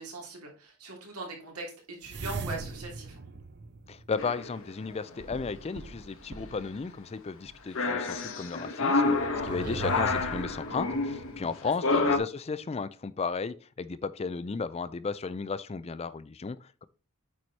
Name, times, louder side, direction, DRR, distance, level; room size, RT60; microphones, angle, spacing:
voice 1, 0.0-3.2 9.5-9.8 11.6-12.0, right 3 dB, 80° right, 3.0 m, -41 dB
sound 1, 2.0-4.5 5.2-6.8 7.5-7.6 9.0-11.5, right 4 dB, 50° right, 0.7 m, -40 dB
voice 2, 3.9-9.2 9.4-16.8, left 4 dB, 25° left, 0.4 m, -34 dB
sound 2, 4.2-4.6 5.3-5.6 7.7-12.2, left 3 dB, 60° left, 1.2 m, -28 dB
8.7 x 4.8 x 4.1 m
head